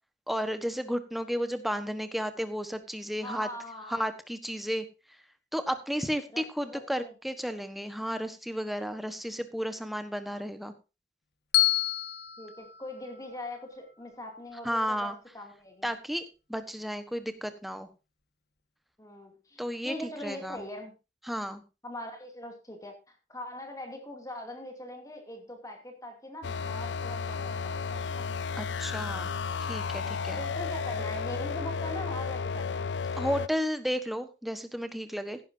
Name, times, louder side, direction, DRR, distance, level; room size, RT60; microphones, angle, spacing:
voice 1, 0.3-3.5 3.9-4.9 5.5-10.7 14.6-15.2 15.8-16.2 16.5-17.9 19.6-20.6 21.3-21.6 28.6-29.3 29.7-30.4 33.2-35.4, equal, ahead, 9 dB, 1.3 m, -33 dB
voice 2, 3.2-4.1 6.3-7.1 12.4-15.9 19.0-19.6 19.8-20.9 21.8-28.3 30.4-32.9, left 1 dB, 20° left, 4 dB, 2.7 m, -42 dB
Bell, 11.5-13.7, left 15 dB, 60° left, 1.6 m, -29 dB
sound 1, 26.4-33.5, left 5 dB, 80° left, 0.5 m, -33 dB
16.0 x 11.0 x 2.8 m, 0.28 s
head